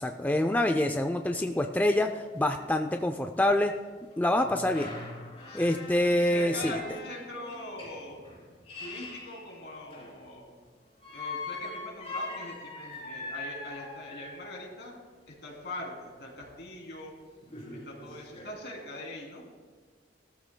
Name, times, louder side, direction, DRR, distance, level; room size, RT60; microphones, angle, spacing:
voice 1, 0.0-3.7 4.2-4.9 5.5-6.8, left 1 dB, 10° left, 5 dB, 0.4 m, -26 dB
sound 1, 2.1-2.2 2.7-2.8 4.1-10.3 11.0-14.7 16.4-16.5 17.0-17.1 17.4-18.5, left 3 dB, 35° left, 3.5 m, -42 dB
voice 2, 6.2-8.2 8.8-10.6 11.1-15.0 15.3-17.1 17.7-19.4, left 1 dB, 75° left, -1 dB, 3.1 m, -42 dB
18.5 x 13.0 x 2.2 m, 1.5 s
head